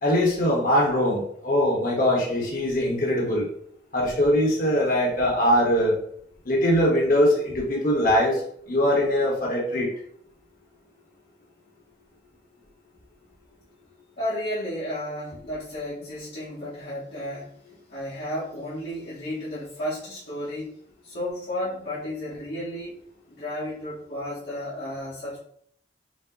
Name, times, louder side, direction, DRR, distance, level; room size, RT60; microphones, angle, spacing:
voice 1, 0.0-3.5 3.9-5.9 6.5-8.4 8.7-9.9, equal, 50° left, -3 dB, 1.1 m, -22 dB
voice 2, 14.2-17.5 17.9-20.7 21.0-23.0 23.3-25.4, left 1 dB, 70° left, -9 dB, 1.4 m, -33 dB
5.2 x 2.1 x 3.8 m, 0.65 s
head